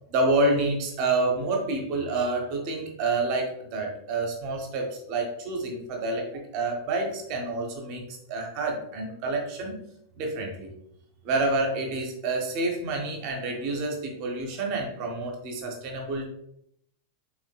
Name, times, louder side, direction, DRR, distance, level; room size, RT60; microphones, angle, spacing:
voice 1, 0.1-9.8 10.2-10.7 11.2-16.2, right 2 dB, 45° right, 2 dB, 1.0 m, -28 dB
5.9 x 3.6 x 2.3 m, 0.73 s
figure-of-eight pair, 90°, 0 cm